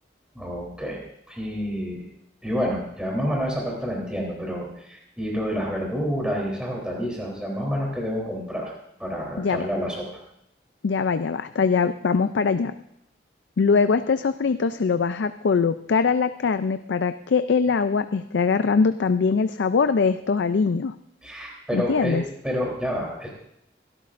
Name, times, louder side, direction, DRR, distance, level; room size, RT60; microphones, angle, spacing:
voice 1, 0.4-1.0 1.3-2.0 2.4-8.7 9.0-10.2 21.2-22.2 22.4-23.3, equal, 5° right, -2 dB, 3.4 m, -28 dB
voice 2, 10.8-12.7 13.6-20.9 21.7-22.2, left 5 dB, 90° left, 10 dB, 0.4 m, -22 dB
24.5 x 12.5 x 2.6 m, 0.78 s
head